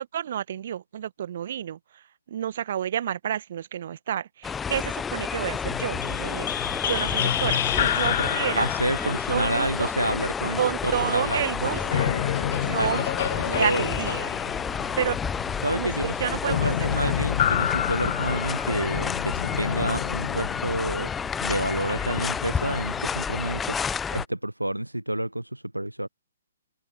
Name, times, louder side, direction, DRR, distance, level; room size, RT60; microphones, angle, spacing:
voice 1, 0.0-8.7 9.0-9.9 10.6-12.1 12.5-13.0 13.4-14.3 15.0-15.2 15.7-17.1, right 10 dB, 50° right, 1.4 m, -30 dB
sound 1, 4.4-24.3, left 6 dB, 10° left, 0.9 m, -30 dB
sound 2, 5.7-10.7 11.7-23.2, left 11 dB, 45° left, 0.7 m, -30 dB
voice 2, 8.6-12.2 12.8-13.0 13.5-13.9 15.6-16.1 16.5-21.1 21.4-26.1, right 1 dB, 85° right, 0.8 m, -29 dB
figure-of-eight pair, 125°, 0 cm